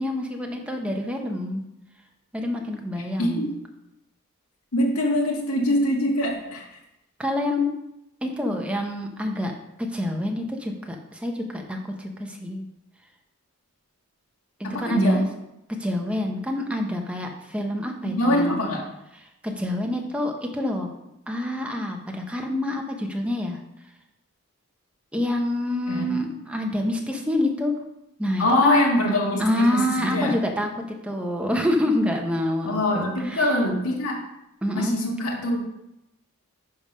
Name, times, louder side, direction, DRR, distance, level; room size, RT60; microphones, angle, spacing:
voice 1, 0.0-1.6 2.3-3.5 7.2-7.8 8.2-9.5 9.9-12.7 14.6-15.3 15.8-18.6 19.4-20.9 21.3-23.6 25.1-27.8 28.2-28.8 29.4-33.5 34.6-35.0, left 1 dB, 5° right, 2 dB, 0.8 m, -27 dB
voice 2, 4.7-6.6 14.6-15.2 18.0-18.8 25.9-26.1 28.4-30.3 32.7-34.2 34.7-35.7, left 1 dB, 80° left, -1 dB, 1.9 m, -23 dB
10.5 x 3.5 x 5.4 m, 0.86 s
head